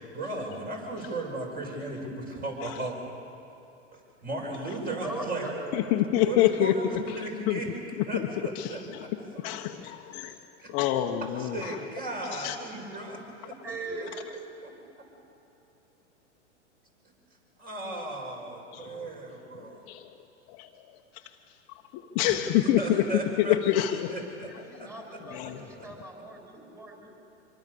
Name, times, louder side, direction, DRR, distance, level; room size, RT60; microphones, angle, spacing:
voice 1, 0.1-3.0 4.2-5.5 6.2-7.7 8.1-9.1 11.4-13.6 14.0-14.1 14.6-14.7 17.6-19.9 22.2-24.5 24.8-24.9, right 2 dB, 25° right, 0 dB, 6.9 m, -36 dB
voice 2, 5.0-5.8 6.2-6.3 12.8-13.0 13.6-14.3 24.5-27.1, right 2 dB, 10° right, 0 dB, 6.3 m, -39 dB
voice 3, 5.7-6.8 7.1-7.2 7.5-7.6 8.0-8.3 8.5-9.1 9.4-10.3 10.7-11.8 12.3-12.6 18.7-19.1 19.5-20.1 20.5-21.0 21.9-23.1 23.4-24.2 25.2-25.7, left 13 dB, 40° left, 4 dB, 1.2 m, -27 dB
26.0 x 23.5 x 7.0 m, 2.9 s
hypercardioid pair, 115°, 36 cm